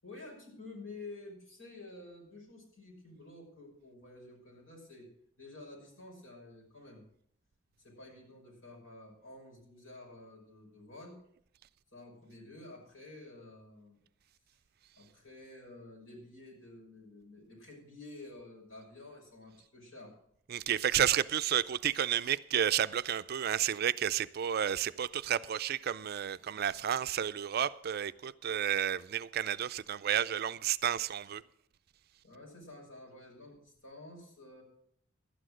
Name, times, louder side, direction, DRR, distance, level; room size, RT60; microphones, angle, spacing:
voice 1, 0.0-5.1 5.4-7.0 7.8-11.2 11.9-14.0 15.0-20.1 32.2-34.6, left 2 dB, 80° left, 5.7 m, -50 dB
voice 2, 20.5-31.4, right 9 dB, 50° right, 0.4 m, -31 dB
12.5 x 9.9 x 6.3 m
head